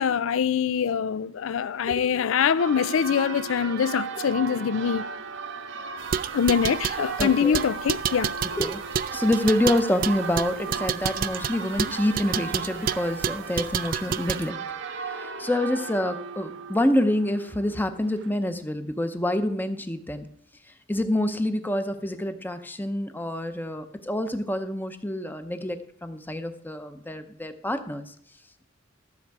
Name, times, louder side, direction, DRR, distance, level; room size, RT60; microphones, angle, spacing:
voice 1, 0.0-5.0 6.3-8.3, left 7 dB, 90° left, 0.4 m, -24 dB
Church bell, 2.6-18.3, right 5 dB, 65° right, 0.7 m, -36 dB
sound 1, 6.0-14.5, right 7 dB, 45° right, 0.4 m, -30 dB
voice 2, 7.2-7.6 8.4-8.8 9.1-14.6 15.2-20.3 20.9-28.1, left 1 dB, 10° left, 0.7 m, -27 dB
13.0 x 7.2 x 4.7 m
head